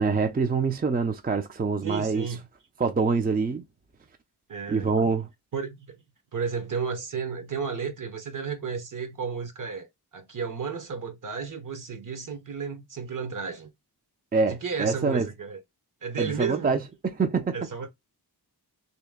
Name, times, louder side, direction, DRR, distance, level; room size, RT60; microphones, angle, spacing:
voice 1, 0.0-2.3 2.8-3.6 4.7-5.3 14.3-15.3 16.2-17.6, right 4 dB, 25° right, 0.4 m, -25 dB
voice 2, 1.8-2.4 4.5-4.9 5.5-6.0 6.3-13.7 14.5-15.6 16.0-16.8 17.5-17.9, right 6 dB, 50° right, 0.9 m, -33 dB
3.2 x 2.9 x 3.5 m
wide cardioid pair, 105°, 40 cm